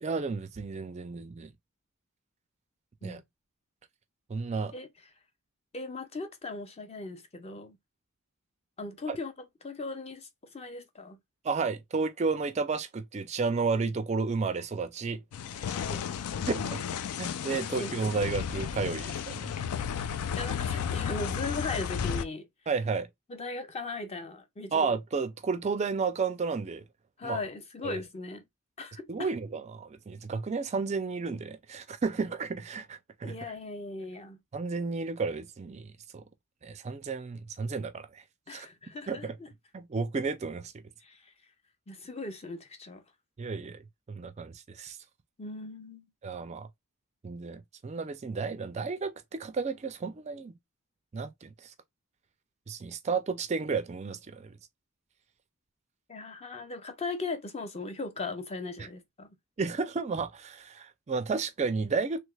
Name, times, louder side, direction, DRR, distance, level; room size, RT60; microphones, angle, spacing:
voice 1, 0.0-1.5 3.0-3.2 4.3-4.7 9.1-9.2 11.4-15.2 15.5-15.7 16.5-19.5 22.7-23.1 24.7-26.8 27.2-27.4 27.8-28.0 29.1-33.4 34.5-36.2 36.6-38.2 38.5-38.7 39.1-39.3 39.7-40.7 43.4-43.8 44.1-45.0 46.2-46.7 47.2-50.5 51.1-51.7 52.7-54.6 58.8-58.9 59.6-62.2, right 4 dB, 30° right, 0.3 m, -32 dB
voice 2, 5.7-7.8 8.8-9.3 9.6-11.2 15.6-16.0 17.6-18.3 20.4-22.5 23.3-24.7 27.2-28.4 28.8-29.3 33.2-34.4 38.5-39.5 41.0-41.3 41.9-43.0 45.4-46.0 56.1-59.3, left 3 dB, 30° left, 0.6 m, -38 dB
sound 1, 15.3-22.2, left 7 dB, 80° left, 0.4 m, -33 dB
3.2 x 3.2 x 2.2 m
head